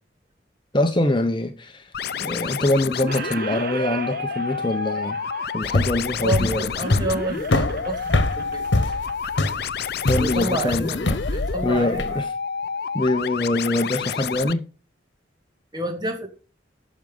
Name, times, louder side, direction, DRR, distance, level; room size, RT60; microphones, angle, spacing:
voice 1, 0.7-1.9 2.2-5.2 5.5-6.7 10.1-11.2 11.6-12.3 12.9-14.6, left 1 dB, 25° left, 0.9 m, -24 dB
sound 1, 1.9-14.5, left 6 dB, 60° left, 0.5 m, -30 dB
Squeak, 2.1-2.7 2.9-10.5, right 5 dB, 50° right, 1.3 m, -38 dB
sound 2, 5.6-12.2, left 2 dB, 80° left, 1.2 m, -24 dB
voice 2, 6.2-8.7 10.2-11.0 11.3-12.0 15.7-16.3, right 1 dB, 25° right, 2.4 m, -28 dB
11.5 x 6.4 x 5.4 m
head